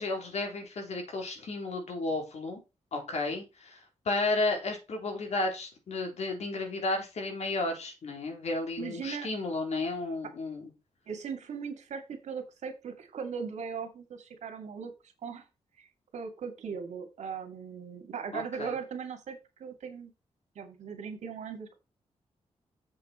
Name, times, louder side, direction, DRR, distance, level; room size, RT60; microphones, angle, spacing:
voice 1, 0.0-2.6 2.9-3.8 4.1-10.7 18.3-18.7, left 2 dB, 70° left, 3 dB, 3.7 m, -33 dB
voice 2, 8.4-9.3 10.2-10.3 11.1-14.9 15.2-15.4 15.8-15.9 16.1-20.1 20.6-21.8, right 6 dB, 85° right, 6 dB, 2.4 m, -39 dB
7.8 x 7.2 x 4.4 m, 0.27 s
wide cardioid pair, 125°, 12 cm